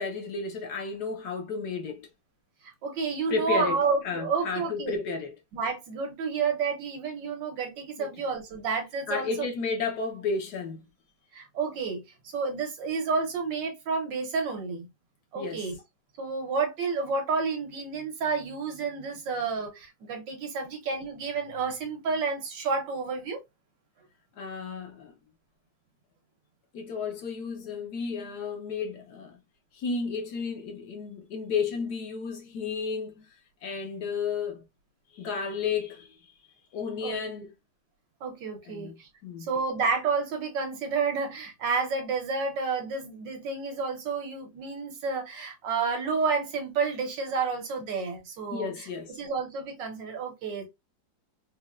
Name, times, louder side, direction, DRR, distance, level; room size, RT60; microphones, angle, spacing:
voice 1, 0.0-2.1 3.3-5.3 8.0-8.1 9.1-10.8 15.3-15.6 24.4-25.1 26.7-29.4 29.7-33.3 33.6-34.6 35.1-36.3 36.7-37.5 38.7-39.0 39.2-39.5 48.5-49.2, left 5 dB, 65° left, 1.2 m, -32 dB
voice 2, 2.6-5.0 5.5-9.5 11.3-14.9 15.3-15.8 16.2-23.4 37.0-37.2 38.2-39.1 39.4-50.7, right 4 dB, 75° right, 1.6 m, -30 dB
4.1 x 2.2 x 2.3 m
omnidirectional pair, 2.0 m